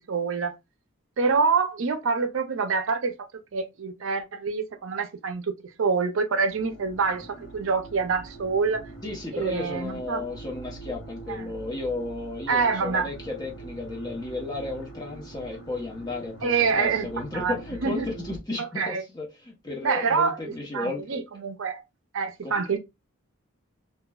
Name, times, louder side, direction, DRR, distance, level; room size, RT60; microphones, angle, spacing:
voice 1, 0.1-0.5 1.2-3.1 3.5-5.5 5.8-8.9 9.3-10.2 11.3-11.5 12.5-13.1 16.4-17.1 17.3-18.1 18.6-19.0 19.8-21.8 22.1-22.8, right 5 dB, 65° right, 0.5 m, -26 dB
sound 1, 6.5-18.4, right 3 dB, 65° left, 0.9 m, -43 dB
voice 2, 9.0-21.2 22.4-22.5, left 2 dB, 20° left, 0.8 m, -34 dB
2.9 x 2.3 x 2.2 m
head